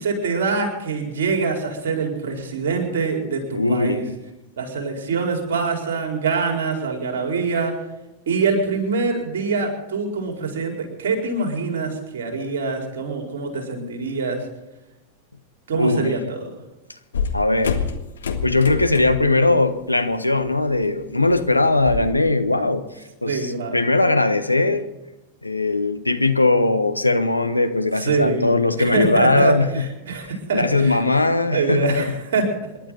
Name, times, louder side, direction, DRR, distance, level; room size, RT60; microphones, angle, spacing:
voice 1, 0.0-4.0 4.6-7.8 8.3-14.5 15.7-16.5 23.3-23.8 28.0-28.5 28.8-31.0 31.5-32.6, right 4 dB, 60° right, 2 dB, 4.6 m, -24 dB
voice 2, 3.5-4.0 15.8-16.1 17.3-17.8 18.4-22.8 23.2-24.9 25.4-29.8 30.5-32.1, left 2 dB, 85° left, 9 dB, 1.1 m, -19 dB
sound 1, 17.1-19.4 19.7-20.1 20.4-22.1, left 5 dB, 70° left, 1.7 m, -27 dB
28.0 x 11.5 x 4.1 m, 1.0 s
figure-of-eight pair, 90°, 0 cm